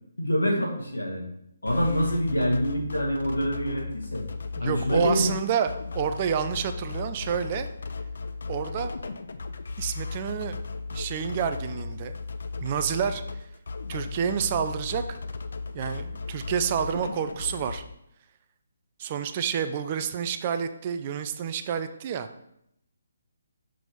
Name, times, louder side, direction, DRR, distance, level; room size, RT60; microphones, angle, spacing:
voice 1, 0.2-1.2 1.6-4.2 4.6-5.3, equal, 80° left, -1 dB, 1.6 m, -26 dB
sound 1, 1.7-17.8, left 4 dB, 60° left, 0.4 m, -36 dB
voice 2, 4.6-7.7 8.5-8.9 9.8-10.6 10.9-12.2 12.6-13.2 13.9-15.2 15.7-17.8 19.0-22.3, right 8 dB, 30° right, 9 dB, 0.4 m, -29 dB
6.1 x 3.0 x 5.2 m, 0.77 s
figure-of-eight pair, 140°, 0 cm